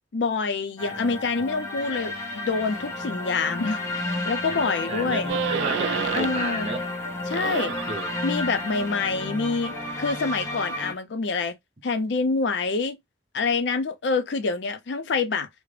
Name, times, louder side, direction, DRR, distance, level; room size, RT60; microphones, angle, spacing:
voice 1, 0.1-5.3 6.2-6.7 7.3-7.7 8.2-11.6 11.8-13.0 13.3-15.5, left 4 dB, 75° left, 0.5 m, -26 dB
sound 1, 0.8-10.9, left 2 dB, 15° left, 0.6 m, -32 dB
voice 2, 4.5-6.8 7.7-8.1, right 2 dB, 35° right, 0.6 m, -33 dB
sound 2, 5.3-6.5 6.9-10.5, right 7 dB, 80° right, 0.3 m, -32 dB
2.4 x 2.0 x 3.2 m
head